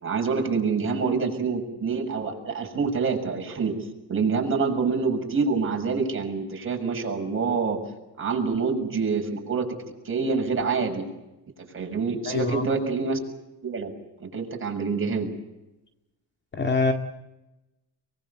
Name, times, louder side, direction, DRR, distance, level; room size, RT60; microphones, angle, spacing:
voice 1, 0.0-3.8 4.1-7.8 8.2-9.8 10.0-11.0 11.7-13.2 13.6-13.9 14.2-15.3, right 5 dB, 30° right, 2 dB, 6.7 m, -26 dB
voice 2, 12.3-12.6 16.5-16.9, left 3 dB, 25° left, 5 dB, 2.2 m, -24 dB
24.0 x 21.0 x 8.2 m, 0.97 s
cardioid pair, 115°, 42 cm